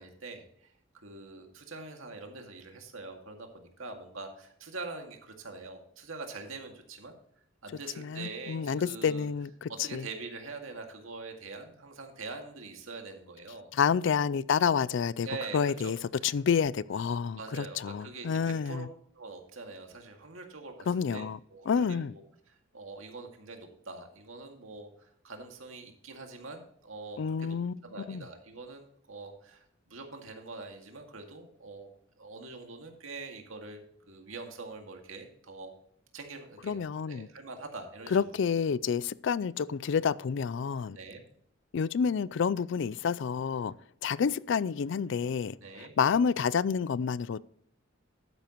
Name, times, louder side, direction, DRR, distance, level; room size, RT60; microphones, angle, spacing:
voice 1, 0.0-7.1 7.6-9.3 9.8-13.7 15.2-15.9 17.4-18.9 19.1-22.2 22.5-27.6 27.8-31.9 32.2-35.7 36.1-36.8 37.1-38.3 40.9-41.2 45.6-45.9, right 3 dB, 85° right, 2.1 m, -44 dB
voice 2, 8.0-10.1 13.7-15.3 15.5-18.9 20.9-21.4 21.7-22.1 27.2-27.7 28.1-28.2 36.6-37.3 38.1-41.0 41.7-43.7 44.0-47.4, left 6 dB, 65° left, 0.4 m, -29 dB
12.0 x 9.3 x 3.0 m
head